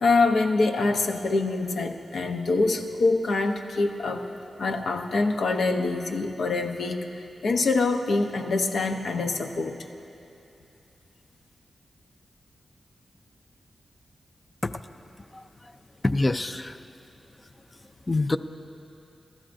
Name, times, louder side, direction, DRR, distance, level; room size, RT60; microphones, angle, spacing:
voice 1, 0.0-4.3 4.6-9.9, left 3 dB, 75° left, 4 dB, 0.8 m, -25 dB
voice 2, 16.0-16.8 18.1-18.4, left 2 dB, 20° left, 11 dB, 0.4 m, -25 dB
25.0 x 13.0 x 2.6 m, 2.8 s
wide cardioid pair, 145°, 0 cm